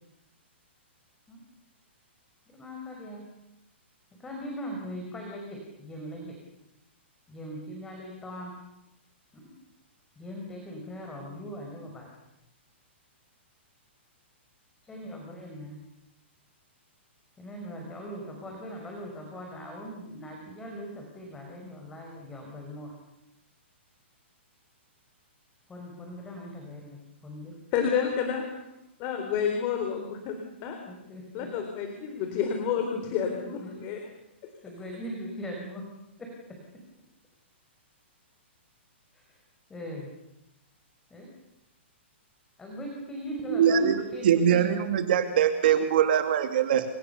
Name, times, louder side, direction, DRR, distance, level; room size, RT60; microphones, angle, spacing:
voice 1, 2.5-3.2 4.2-6.4 7.3-8.5 9.3-9.5 10.1-12.1 14.8-15.8 17.4-22.9 25.7-27.5 28.1-28.2 29.7-30.2 30.9-31.5 32.1-32.2 33.2-33.9 34.6-35.9 36.2-36.6 39.1-39.4 39.7-40.1 41.1-41.3 42.6-45.0, equal, 10° left, 0 dB, 5.2 m, -40 dB
voice 2, 27.7-28.4 29.0-30.3 30.6-30.8 31.3-34.0 34.4-34.5, left 7 dB, 25° left, 5 dB, 3.8 m, -29 dB
voice 3, 43.5-46.9, right 8 dB, 50° right, 7 dB, 2.7 m, -23 dB
29.0 x 28.5 x 7.0 m, 0.85 s
hypercardioid pair, 170°, 7 cm